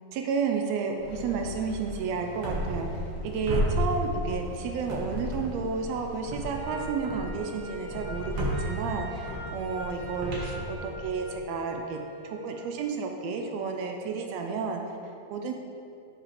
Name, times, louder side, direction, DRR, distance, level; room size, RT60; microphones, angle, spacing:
voice 1, 0.1-12.0 12.2-15.0 15.3-15.5, right 5 dB, 75° right, 3 dB, 1.6 m, -31 dB
sound 1, 1.0-6.6, equal, 65° left, 2.7 m, -42 dB
sound 2, 2.4-3.2 3.5-4.5 4.9-5.7 6.3-11.4, equal, 55° right, 1.8 m, -33 dB
Wind instrument woodwind instrument, 6.5-12.6, left 1 dB, 30° left, 1.1 m, -42 dB
7.4 x 4.9 x 5.0 m, 2.6 s
omnidirectional pair, 3.4 m